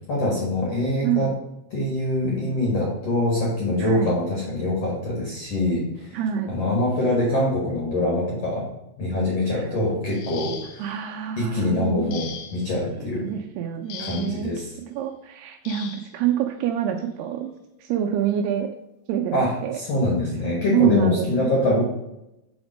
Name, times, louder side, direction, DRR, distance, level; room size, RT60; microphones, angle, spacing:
voice 1, 0.1-1.3 1.7-6.2 6.5-8.6 9.0-10.9 11.4-13.2 14.0-14.7 19.3-21.8, left 1 dB, 60° left, -3 dB, 1.7 m, -24 dB
voice 2, 3.8-4.2 6.1-6.5 9.5-9.7 10.8-12.2 13.0-14.5 14.9-17.5 17.8-18.7 19.1-19.8 20.7-21.5, right 9 dB, 80° right, 4 dB, 2.4 m, -26 dB
sound 1, 10.1-11.0 12.1-12.8 13.9-14.5 15.7-16.1 17.3-17.5 18.0-18.2, left 8 dB, 85° left, 2.0 m, -39 dB
7.1 x 4.3 x 5.0 m, 0.89 s
omnidirectional pair, 5.0 m